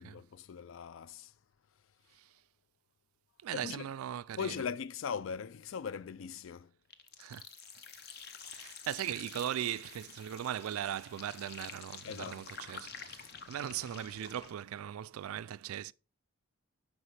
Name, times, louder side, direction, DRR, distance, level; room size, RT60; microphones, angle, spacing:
voice 1, 0.0-1.3 3.5-3.9 4.4-6.7 12.0-12.4, left 6 dB, 70° left, 0.4 m, -40 dB
voice 2, 3.4-4.6 7.2-7.4 8.5-15.9, right 10 dB, 90° right, 0.3 m, -39 dB
sound 1, 6.9-14.5, left 6 dB, 50° left, 0.8 m, -49 dB
9.7 x 6.1 x 3.3 m
head